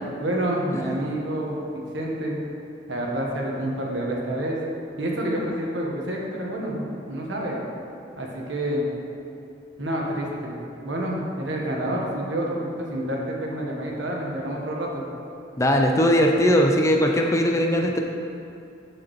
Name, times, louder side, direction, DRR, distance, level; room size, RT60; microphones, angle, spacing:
voice 1, 0.2-2.4 2.9-4.6 5.0-7.6 8.2-8.8 9.8-10.6 10.8-15.0, right 1 dB, 70° right, -2 dB, 1.3 m, -28 dB
voice 2, 15.6-18.0, equal, 15° left, 1 dB, 0.4 m, -20 dB
12.5 x 4.9 x 3.1 m, 2.7 s
head